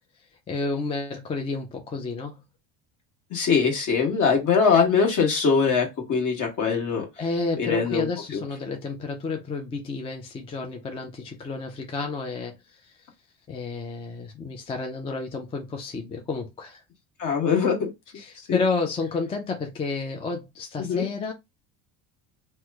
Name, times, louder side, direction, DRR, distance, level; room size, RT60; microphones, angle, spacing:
voice 1, 0.5-2.4 7.2-13.0 13.5-16.8 18.1-21.3, left 4 dB, 15° left, 0.3 m, -30 dB
voice 2, 3.3-7.1 7.6-8.1 8.3-8.4 17.2-17.9 18.5-18.6 20.8-21.0, left 5 dB, 45° left, 1.4 m, -22 dB
2.9 x 2.1 x 3.4 m
cardioid pair, 130°, 43 cm